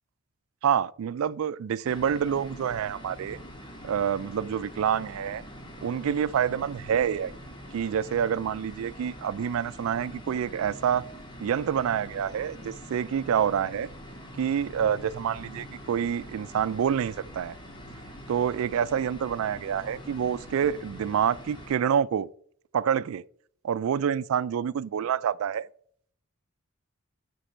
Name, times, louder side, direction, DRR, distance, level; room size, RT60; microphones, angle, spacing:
voice 1, 0.6-3.4 3.8-5.4 5.8-7.3 7.7-11.0 11.4-13.9 14.4-17.6 18.3-22.3 22.7-23.2 23.6-25.7, right 8 dB, 85° right, 0.3 m, -27 dB
sound 1, 1.8-21.8, equal, 20° left, 1.6 m, -44 dB
11.5 x 5.4 x 4.3 m
head